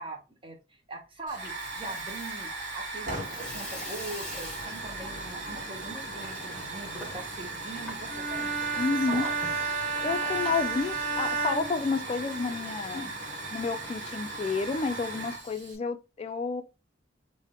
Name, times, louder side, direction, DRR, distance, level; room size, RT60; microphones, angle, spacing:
voice 1, 0.0-9.3, right 2 dB, 30° right, 1.0 m, -42 dB
Hiss / Fire, 1.3-15.8, right 2 dB, 45° right, 1.7 m, -38 dB
Water tap faucet / Sink (filling or washing), 1.4-11.6, equal, 5° left, 1.5 m, -45 dB
Bowed string instrument, 8.1-12.6, right 4 dB, 75° right, 1.1 m, -32 dB
voice 2, 8.8-9.2 10.0-13.2 13.5-16.6, left 4 dB, 35° left, 0.3 m, -30 dB
3.6 x 2.7 x 3.5 m
head